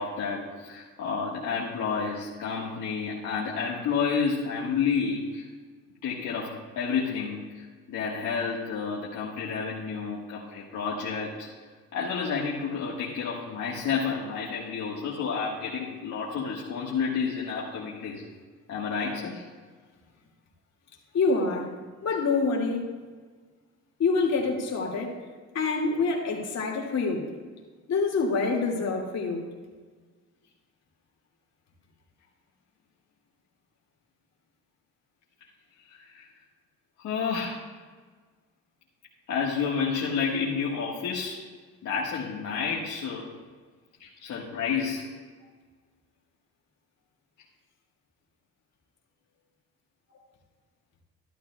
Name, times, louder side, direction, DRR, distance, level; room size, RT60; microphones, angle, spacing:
voice 1, 0.0-5.5 6.0-11.5 11.9-18.2 18.7-19.4 35.9-36.3 37.0-37.6 39.3-41.4 41.8-43.2 44.0-45.1, left 5 dB, 75° left, -6 dB, 1.7 m, -30 dB
voice 2, 21.1-21.7 22.0-22.9 24.0-25.1 25.5-27.2 27.9-29.4, left 4 dB, 60° left, -1 dB, 2.4 m, -26 dB
14.0 x 12.0 x 2.4 m, 1.4 s
cardioid pair, 90°, 30 cm